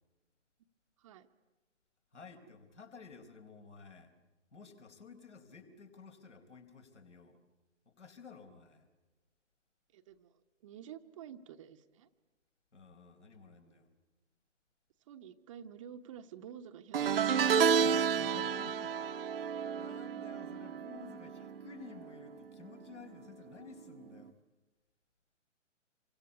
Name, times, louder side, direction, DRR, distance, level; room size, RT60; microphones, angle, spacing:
voice 1, 2.1-4.1 4.5-7.4 7.9-8.9 12.7-13.9 17.7-24.3, left 5 dB, 65° left, 5 dB, 4.7 m, -53 dB
voice 2, 9.9-12.1 15.1-17.7, right 8 dB, 25° right, 7 dB, 1.1 m, -50 dB
sound 1, 16.9-22.3 22.6-23.0 24.2-24.3, right 7 dB, 50° right, 1.1 m, -31 dB
28.0 x 24.5 x 8.4 m, 1.2 s
figure-of-eight pair, 130°, 38 cm